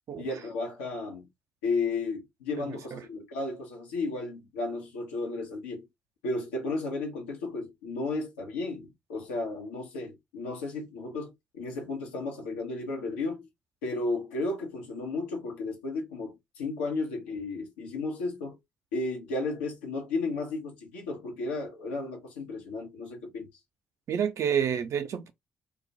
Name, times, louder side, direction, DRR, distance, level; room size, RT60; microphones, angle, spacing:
voice 1, 0.2-1.3 1.6-5.9 6.2-13.5 13.8-18.6 18.9-23.5, left 3 dB, 80° left, 0.7 m, -33 dB
voice 2, 2.6-3.0 24.1-25.3, right 8 dB, 55° right, 0.5 m, -29 dB
2.2 x 2.1 x 2.7 m
hypercardioid pair, 45°, 6 cm